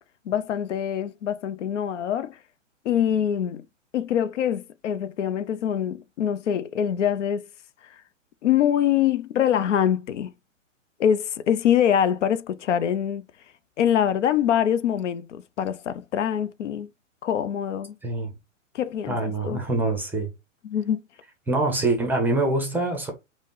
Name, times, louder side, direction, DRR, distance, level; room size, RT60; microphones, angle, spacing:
voice 1, 0.3-2.4 2.8-3.7 3.9-7.5 7.8-8.0 8.4-10.3 11.0-13.2 13.8-16.9 17.2-17.9 18.7-19.6 20.6-21.0, left 9 dB, 65° left, 0.5 m, -24 dB
voice 2, 18.0-18.3 19.1-20.3 21.5-23.1, right 2 dB, 5° right, 0.6 m, -24 dB
5.1 x 2.1 x 3.8 m
hypercardioid pair, 125°, 39 cm